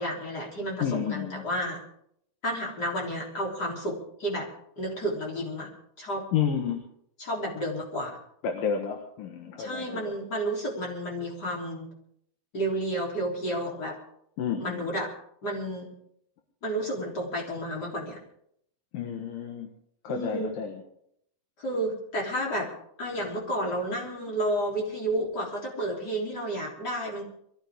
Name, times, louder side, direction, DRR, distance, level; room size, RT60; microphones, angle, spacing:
voice 1, 0.0-1.8 2.4-4.5 4.8-5.7 6.0-6.3 7.2-8.2 9.6-11.9 12.5-14.0 14.6-15.1 15.4-15.9 16.6-18.2 20.1-20.5 21.6-22.7 23.0-27.2, right 1 dB, 25° left, -2 dB, 3.8 m, -31 dB
voice 2, 0.8-1.5 6.3-6.8 8.4-10.1 14.4-14.8 18.9-19.7 20.0-20.7, left 7 dB, 65° left, 3 dB, 2.9 m, -30 dB
22.5 x 14.5 x 3.7 m, 0.70 s
omnidirectional pair, 4.5 m